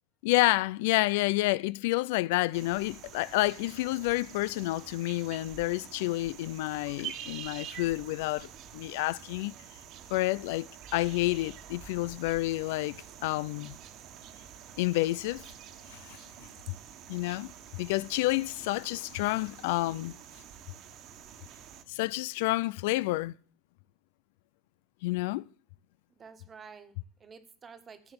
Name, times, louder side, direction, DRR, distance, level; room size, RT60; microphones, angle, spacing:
voice 1, 0.2-9.5 10.1-13.8 14.8-15.4 15.9-16.2 17.1-17.5 17.8-20.2 21.9-23.3 25.0-25.4, left 19 dB, 85° left, 0.5 m, -29 dB
sound 1, 2.5-21.8, right 9 dB, 50° right, 1.5 m, -47 dB
voice 2, 26.2-28.1, right 5 dB, 25° right, 1.5 m, -50 dB
14.5 x 8.0 x 6.9 m
cardioid pair, 145°, 0 cm